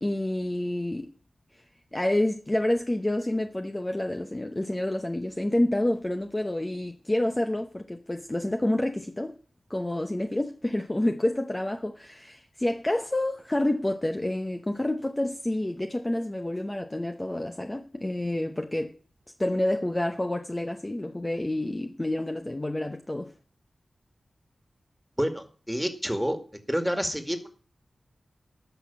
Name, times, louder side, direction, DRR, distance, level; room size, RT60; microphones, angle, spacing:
voice 1, 0.0-1.1 1.9-9.4 9.7-19.0 19.4-23.3, left 1 dB, 20° left, 0.8 m, -28 dB
voice 2, 25.2-26.4 26.7-27.5, equal, ahead, 2.2 m, -28 dB
12.5 x 6.1 x 8.4 m
wide cardioid pair, 70°, 0 cm